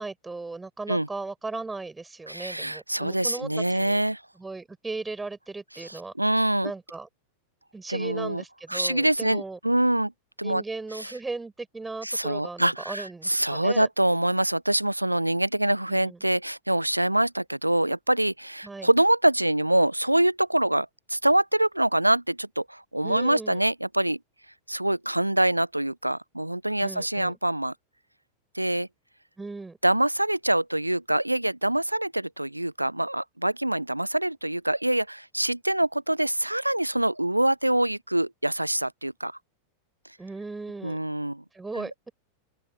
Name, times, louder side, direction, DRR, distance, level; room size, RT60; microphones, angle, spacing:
voice 1, 0.0-4.0 4.4-6.1 6.6-7.1 7.7-9.6 10.4-13.9 15.9-16.2 18.6-18.9 23.0-23.6 26.8-27.3 29.4-29.8 40.2-41.0 41.5-42.1, right 3 dB, 10° right, 6.1 m, -37 dB
voice 2, 2.3-4.2 5.8-6.7 7.9-8.4 8.7-10.1 10.4-10.6 10.9-11.1 12.0-24.2 24.7-27.7 28.5-28.9 29.8-39.3 40.8-41.4 41.8-41.9, right 1 dB, 85° right, 0.4 m, -25 dB
open air
figure-of-eight pair, 90°, 0 cm